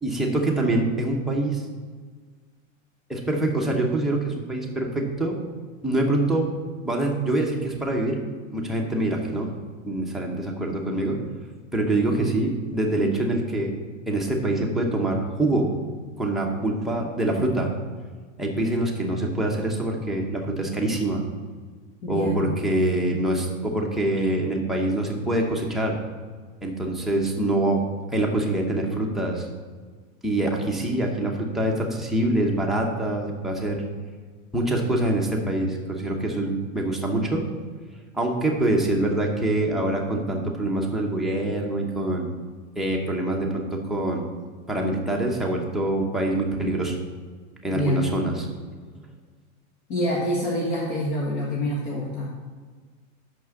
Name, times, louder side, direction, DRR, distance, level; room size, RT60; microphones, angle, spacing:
voice 1, 0.0-1.6 3.1-5.4 5.8-6.5 6.8-8.2 8.5-9.5 9.9-11.2 11.7-13.7 14.1-15.7 16.2-17.7 18.4-21.2 22.1-26.0 26.6-27.8 28.1-29.5 30.2-33.8 34.5-37.4 38.1-42.3 42.8-44.3 44.7-46.9 47.6-48.5, right 1 dB, ahead, -2 dB, 0.8 m, -25 dB
voice 2, 22.0-22.5 47.7-48.1 49.9-52.3, equal, 45° left, -4 dB, 1.7 m, -26 dB
6.1 x 6.0 x 7.0 m, 1.5 s
supercardioid pair, 155°, 40 cm